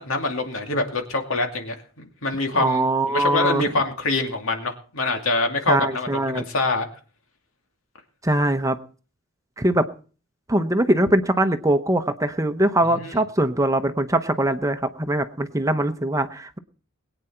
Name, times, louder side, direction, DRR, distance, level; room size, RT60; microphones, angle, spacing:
voice 1, 0.0-6.9 12.9-13.1, left 2 dB, 80° left, 4 dB, 2.5 m, -25 dB
voice 2, 2.5-3.7 5.7-6.4 8.2-8.8 9.6-9.9 10.5-16.6, right 1 dB, 15° right, 9 dB, 0.8 m, -22 dB
21.5 x 9.0 x 4.4 m, 0.40 s
head